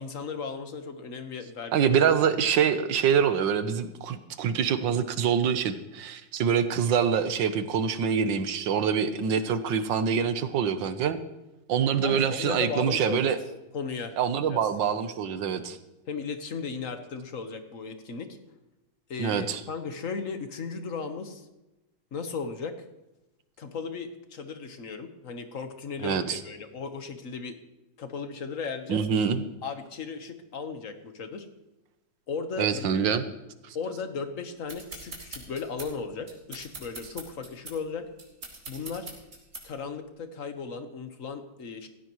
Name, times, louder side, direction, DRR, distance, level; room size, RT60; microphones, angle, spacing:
voice 1, 0.0-2.0 12.0-13.4 13.7-14.2 14.5-14.6 16.1-18.3 19.1-21.5 22.1-22.7 23.6-27.6 28.0-29.0 29.6-31.5 32.3-33.0 33.7-38.1 38.7-39.1 39.6-41.9, left 5 dB, 45° left, 7 dB, 1.5 m, -36 dB
voice 2, 1.7-11.2 11.7-13.4 14.2-15.8 19.2-19.6 26.0-26.4 28.9-29.4 32.6-33.2 33.7-33.8, right 7 dB, 70° right, 10 dB, 1.6 m, -25 dB
sound 1, 34.7-39.9, right 2 dB, 40° right, 3.3 m, -43 dB
18.0 x 15.5 x 3.1 m, 0.99 s
omnidirectional pair, 2.1 m